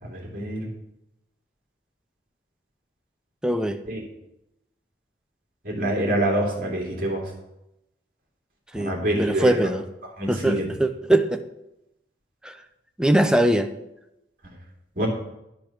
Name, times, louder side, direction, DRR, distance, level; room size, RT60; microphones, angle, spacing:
voice 1, 0.0-0.7 3.9-4.0 5.6-7.3 8.7-9.6 10.2-10.7 15.0-15.1, right 1 dB, 50° right, -1 dB, 2.7 m, -26 dB
voice 2, 3.4-3.8 8.7-9.8 10.3-11.4 12.4-12.5 13.0-13.7, right 1 dB, 5° right, 7 dB, 0.5 m, -22 dB
12.0 x 5.2 x 5.9 m, 0.87 s
head